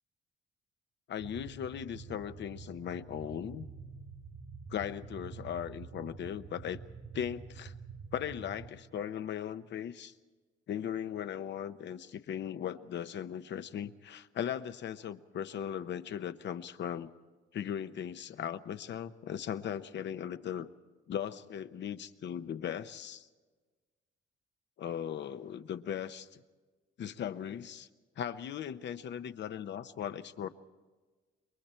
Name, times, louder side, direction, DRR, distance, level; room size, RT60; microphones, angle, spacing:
voice 1, 1.1-3.7 4.7-6.8 7.1-7.7 8.1-10.1 10.7-17.1 17.5-20.7 21.1-23.3 24.8-26.4 27.0-27.9 28.2-30.5, left 9 dB, 65° left, 11 dB, 0.9 m, -38 dB
sound 1, 1.2-8.7, right 5 dB, 70° right, 2.6 m, -47 dB
28.0 x 23.0 x 4.5 m, 1.3 s
cardioid pair, 90°, 20 cm